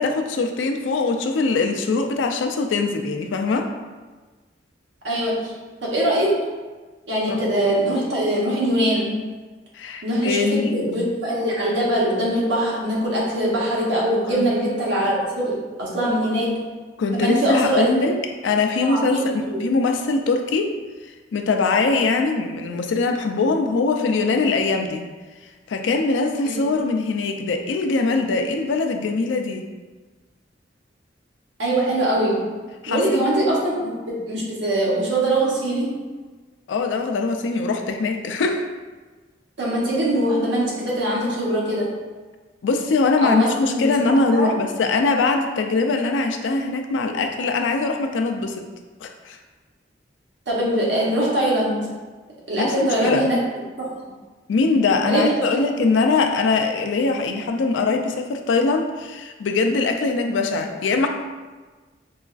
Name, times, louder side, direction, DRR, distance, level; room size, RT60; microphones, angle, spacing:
voice 1, 0.0-3.7 7.3-7.4 9.7-10.7 14.3-14.5 17.0-18.1 18.4-20.7 21.3-25.1 25.7-29.7 32.8-33.2 36.7-38.6 42.6-48.7 49.0-49.4 52.6-53.3 54.5-61.1, left 3 dB, 90° left, 5 dB, 0.4 m, -22 dB
voice 2, 5.0-5.5 5.8-6.4 7.1-9.2 10.0-16.7 17.1-18.0 18.8-19.2 19.5-19.6 26.4-26.7 31.6-32.6 32.9-36.0 39.6-41.9 43.2-43.9 44.3-44.6 50.5-51.9 52.5-53.4 53.8-53.9 55.1-56.0, right 1 dB, 85° right, -5 dB, 1.1 m, -22 dB
4.8 x 2.3 x 2.4 m, 1.3 s
head